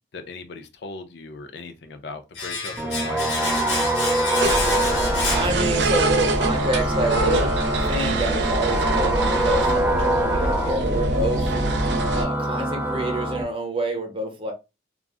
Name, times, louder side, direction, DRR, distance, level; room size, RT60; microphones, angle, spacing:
voice 1, 0.1-3.7, left 3 dB, 70° left, 0.5 m, -38 dB
Domestic sounds home sounds, 2.3-6.2 6.4-6.6, left 3 dB, 85° left, 1.1 m, -29 dB
sound 1, 2.8-13.4, right 1 dB, 10° right, 0.3 m, -25 dB
sound 2, 4.4-12.2, right 2 dB, 70° right, 0.5 m, -25 dB
voice 2, 5.3-7.6 7.8-11.5 12.1-14.5, right 1 dB, 30° right, 0.8 m, -27 dB
2.4 x 2.0 x 3.5 m
head